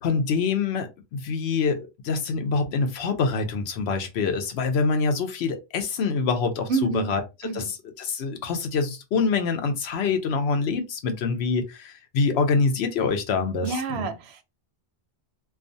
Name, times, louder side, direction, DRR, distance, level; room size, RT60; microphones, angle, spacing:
voice 1, 0.0-14.1, left 4 dB, 85° left, 0.9 m, -25 dB
voice 2, 6.7-7.1 7.4-7.7 13.6-14.4, right 4 dB, 85° right, 0.8 m, -28 dB
2.4 x 2.3 x 2.6 m
omnidirectional pair, 1.1 m